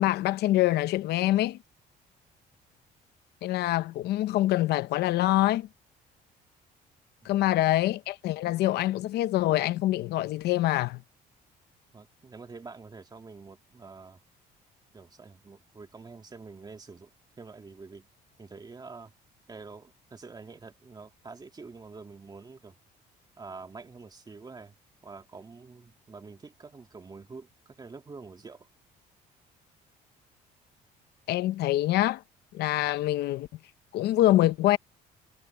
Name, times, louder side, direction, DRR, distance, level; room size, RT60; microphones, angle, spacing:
voice 1, 0.0-1.6 3.4-5.7 7.2-11.0 31.3-32.2 32.5-33.5 33.9-34.8, left 15 dB, 75° left, 0.8 m, -25 dB
voice 2, 7.2-7.6 11.9-14.2 14.9-17.1 17.4-18.1 18.4-19.1 19.5-22.8 23.4-24.8 25.0-28.7, right 4 dB, 25° right, 2.2 m, -46 dB
cardioid pair, 110°, 17 cm